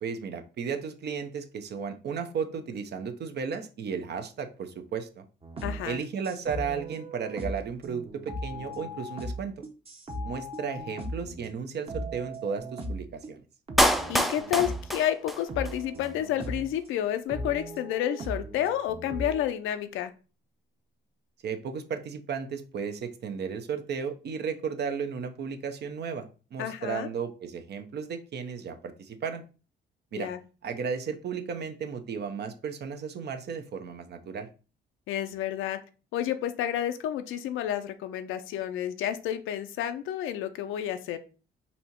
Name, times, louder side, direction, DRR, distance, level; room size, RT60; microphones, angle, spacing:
voice 1, 0.0-5.2 5.9-9.6 10.2-13.4 21.4-29.4 30.1-30.3 30.6-34.5, right 6 dB, 55° right, 7 dB, 0.7 m, -34 dB
sound 1, 5.4-11.5 11.9-13.3 13.7-15.0 15.5-16.8 17.3-19.4, equal, 30° right, 0.9 m, -38 dB
voice 2, 5.6-6.0 14.1-20.1 26.6-27.1 30.1-30.4 35.1-35.8 36.1-41.2, left 11 dB, 90° left, 9 dB, 0.6 m, -30 dB
Clapping, 13.8-15.8 16.0-16.1, equal, ahead, 0.4 m, -26 dB
4.2 x 2.7 x 4.4 m, 0.35 s
cardioid pair, 90°, 20 cm